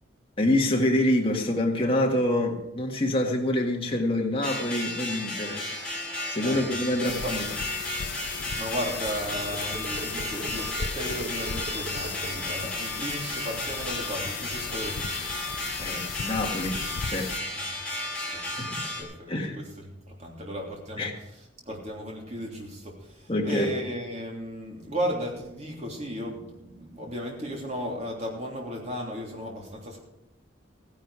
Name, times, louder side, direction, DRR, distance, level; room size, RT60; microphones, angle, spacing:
voice 1, 0.4-5.7 6.3-7.4 15.8-17.3 17.9-18.1 18.6-18.8 19.3-19.6 21.0-21.2 23.3-23.7, left 1 dB, 30° left, 1.8 m, -26 dB
sound 1, 4.4-19.0, left 1 dB, 5° left, 3.1 m, -34 dB
sound 2, 7.0-17.4, left 7 dB, 90° left, 0.5 m, -36 dB
voice 2, 7.0-7.4 8.6-15.3 17.5-17.6 17.9-18.0 18.3-18.4 19.0-21.1 21.6-30.0, equal, 35° right, 3.2 m, -35 dB
sound 3, 9.5-12.5, right 2 dB, 70° right, 1.8 m, -40 dB
15.5 x 10.5 x 4.9 m
head